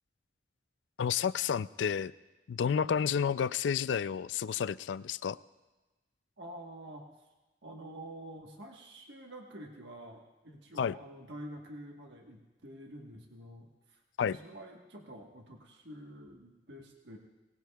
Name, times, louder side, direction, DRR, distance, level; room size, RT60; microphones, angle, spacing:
voice 1, 1.0-2.1 2.5-5.4 10.8-10.9 14.2-14.4, left 7 dB, 75° left, 17 dB, 0.4 m, -30 dB
voice 2, 6.4-7.3 7.6-14.0 14.3-17.2, right 1 dB, 70° right, 1 dB, 1.3 m, -48 dB
22.5 x 18.5 x 2.3 m, 1.1 s
head